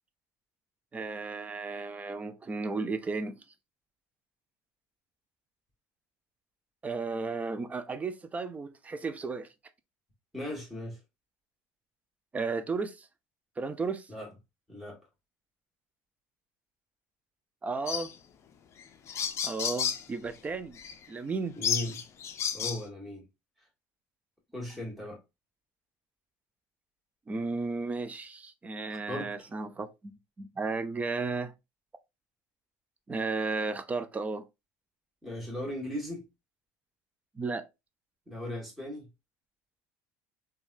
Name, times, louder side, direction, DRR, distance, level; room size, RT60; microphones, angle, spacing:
voice 1, 0.9-3.4 6.8-9.5 12.3-13.1 13.6-14.1 17.6-18.1 19.4-20.8 21.1-21.6 27.3-30.1 30.4-31.5 33.1-34.5 37.4-37.6, right 4 dB, 20° right, 0.4 m, -34 dB
voice 2, 10.3-11.0 14.1-14.3 14.7-15.0 21.6-22.0 22.5-23.2 24.5-25.2 29.1-29.5 35.2-36.3 38.3-39.1, left 1 dB, ahead, 1.5 m, -37 dB
sound 1, 17.9-18.1 18.8-18.9 19.1-20.0 20.8-20.9 21.6-22.8, left 7 dB, 40° left, 0.5 m, -31 dB
3.2 x 2.3 x 2.5 m
supercardioid pair, 110°, 7 cm